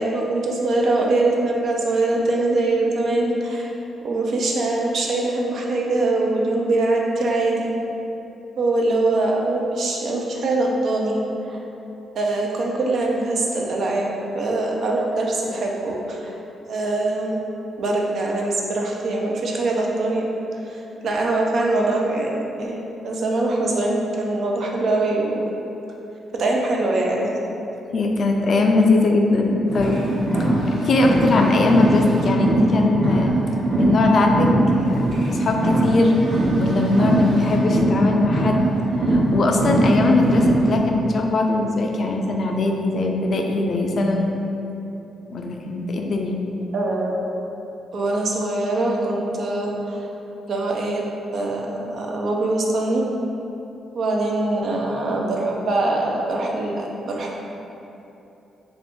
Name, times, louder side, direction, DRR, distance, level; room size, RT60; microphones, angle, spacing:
voice 1, 0.0-3.7 4.0-7.7 8.6-11.2 11.5-11.6 12.1-14.1 14.3-16.3 16.6-17.4 17.8-20.3 20.7-22.3 22.6-25.5 26.3-27.4 46.7-47.3 47.9-50.1 50.5-51.0 51.3-53.0 53.9-57.4, right 2 dB, 65° right, -1 dB, 0.4 m, -23 dB
voice 2, 27.9-30.0 30.4-33.4 33.8-36.1 36.6-38.7 39.1-44.3 45.3-46.4, left 2 dB, 55° left, 2 dB, 0.3 m, -20 dB
Car, 29.7-40.8, right 1 dB, 90° right, 1.0 m, -21 dB
2.5 x 2.5 x 3.6 m, 2.9 s
supercardioid pair, 55°, 0 cm